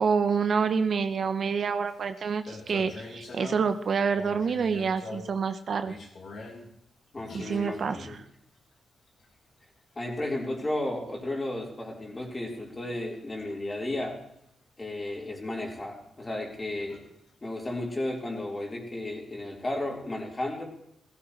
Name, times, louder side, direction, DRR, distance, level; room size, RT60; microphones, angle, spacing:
voice 1, 0.0-6.0 7.3-8.2, right 6 dB, 60° right, 9 dB, 0.9 m, -27 dB
sound 1, 1.9-2.0 2.2-3.8 4.1-5.4 5.8-6.7 7.2-8.3 9.1-9.3 11.0-11.2 12.8-12.9 13.3-13.5 15.9-16.0 16.4-16.5 16.9-17.3 19.7-19.8, left 3 dB, 65° left, 3.5 m, -44 dB
voice 2, 7.1-8.2 10.0-14.2 14.8-17.0 17.4-20.6, left 1 dB, 25° left, -1 dB, 4.2 m, -33 dB
16.5 x 15.5 x 3.3 m, 0.75 s
cardioid pair, 80°, 0 cm